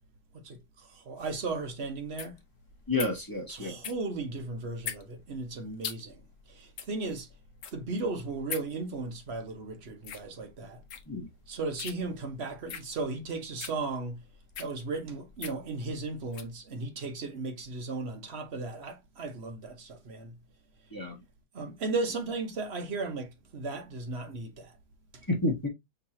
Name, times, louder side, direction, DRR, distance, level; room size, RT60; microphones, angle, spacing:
voice 1, 0.4-2.4 3.5-6.2 6.5-7.3 7.7-10.8 11.5-14.2 14.6-20.3 21.5-24.7 25.1-25.3, right 3 dB, 45° right, 0.9 m, -36 dB
sound 1, 1.2-16.6, left 7 dB, 60° left, 0.9 m, -43 dB
voice 2, 2.9-3.8 11.1-11.3 20.9-21.2 25.3-25.7, left 2 dB, 15° left, 0.8 m, -30 dB
5.6 x 2.9 x 2.7 m
omnidirectional pair, 2.0 m